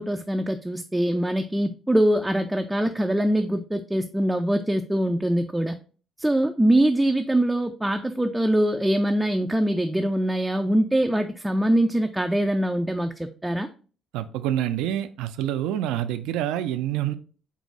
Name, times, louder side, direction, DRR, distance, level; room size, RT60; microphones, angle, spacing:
voice 1, 0.0-5.8 6.2-13.1 13.4-13.7, right 1 dB, 5° right, 6 dB, 0.3 m, -23 dB
voice 2, 14.1-17.1, right 11 dB, 85° right, 11 dB, 0.4 m, -27 dB
4.6 x 2.0 x 3.9 m, 0.39 s
cardioid pair, 95°, 0 cm